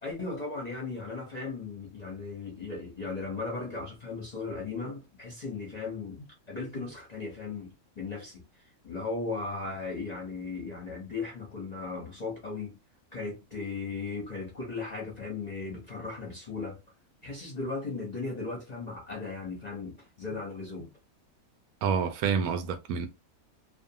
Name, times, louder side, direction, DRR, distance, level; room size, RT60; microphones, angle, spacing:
voice 1, 0.0-8.5 8.8-12.8 13.1-16.8 17.2-20.9, left 3 dB, 40° left, 0.6 m, -37 dB
voice 2, 21.8-23.1, right 6 dB, 75° right, 1.0 m, -28 dB
2.5 x 2.5 x 2.7 m
omnidirectional pair, 1.6 m